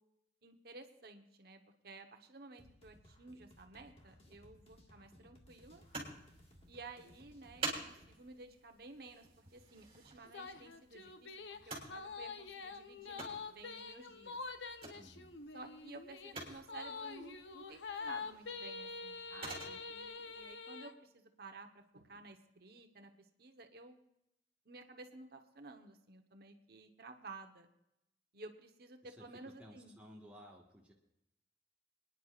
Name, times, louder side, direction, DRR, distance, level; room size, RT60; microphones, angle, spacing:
voice 1, 0.4-5.8 6.7-14.4 15.5-24.0 24.6-27.7 28.3-30.0, right 3 dB, 60° right, 5 dB, 1.1 m, -54 dB
sound 1, 2.6-8.1, equal, 35° left, 1.8 m, -62 dB
sound 2, 5.7-20.6, right 3 dB, 30° right, 3.5 m, -50 dB
sound 3, 10.2-20.9, left 4 dB, 85° left, 0.8 m, -46 dB
voice 2, 14.9-15.3 29.0-29.2 29.6-30.9, equal, 10° right, -3 dB, 1.5 m, -56 dB
27.0 x 10.0 x 2.5 m, 0.83 s
head